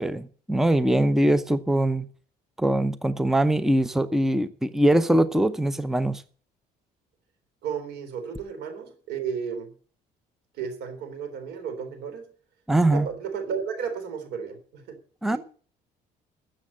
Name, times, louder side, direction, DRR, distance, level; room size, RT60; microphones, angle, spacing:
voice 1, 0.0-2.1 2.6-6.2 12.7-13.1 15.2-15.4, right 1 dB, ahead, 0.7 m, -22 dB
voice 2, 7.6-9.7 10.6-12.2 12.9-15.0 15.3-15.4, right 6 dB, 85° right, 3.9 m, -33 dB
13.5 x 7.6 x 7.5 m
cardioid pair, 110°, 17 cm